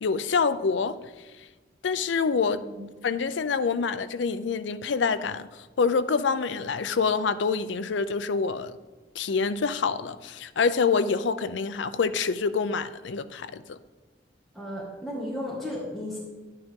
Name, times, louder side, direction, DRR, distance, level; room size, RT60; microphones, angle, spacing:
voice 1, 0.0-1.0 1.8-2.6 3.0-5.5 5.8-8.8 9.2-13.8, left 5 dB, 80° left, 0.5 m, -26 dB
voice 2, 2.4-2.8 14.5-16.2, left 1 dB, ahead, 1.9 m, -35 dB
11.0 x 9.1 x 3.7 m
head